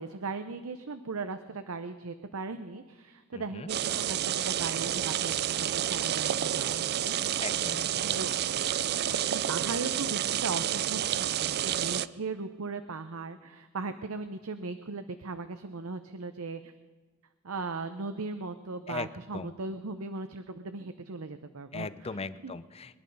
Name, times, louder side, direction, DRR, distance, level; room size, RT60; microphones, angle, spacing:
voice 1, 0.0-7.2 8.0-8.3 9.3-16.7 17.4-22.6, right 3 dB, 80° right, 10 dB, 0.7 m, -38 dB
voice 2, 3.3-3.7 7.4-8.2 18.9-19.1 19.3-19.5 21.7-23.0, left 4 dB, 30° left, 14 dB, 0.6 m, -39 dB
sound 1, 3.7-12.1, right 10 dB, 50° right, 0.4 m, -29 dB
23.0 x 11.0 x 5.3 m, 1.4 s
head